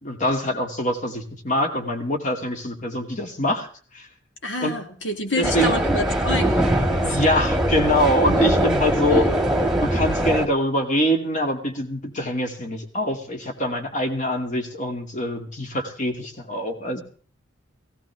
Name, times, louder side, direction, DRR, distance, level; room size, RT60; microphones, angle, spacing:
voice 1, 0.0-3.7 3.9-4.1 4.6-4.8 5.4-5.7 7.0-9.2 9.8-17.0, equal, 40° left, 4 dB, 2.6 m, -24 dB
voice 2, 4.4-7.1 8.2-9.3, left 1 dB, 70° left, 5 dB, 2.6 m, -29 dB
sound 1, 5.4-10.5, right 1 dB, 5° right, 1.8 m, -21 dB
17.0 x 16.5 x 3.5 m, 0.42 s
head